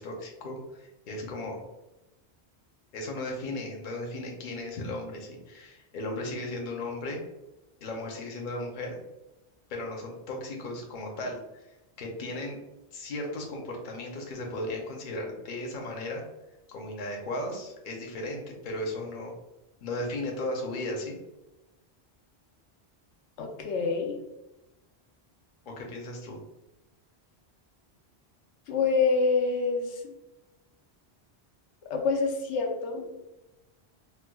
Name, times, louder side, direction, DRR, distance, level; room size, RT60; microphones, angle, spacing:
voice 1, 0.0-1.6 2.9-7.2 7.8-9.0 9.7-11.4 12.0-12.6 12.9-16.2 16.7-19.3 19.8-21.2 25.7-26.4, left 1 dB, 55° left, 1 dB, 0.8 m, -36 dB
voice 2, 23.4-24.2 28.7-30.1 31.9-33.2, left 4 dB, 90° left, 2 dB, 0.9 m, -27 dB
4.4 x 2.2 x 2.2 m, 0.98 s
omnidirectional pair, 1.1 m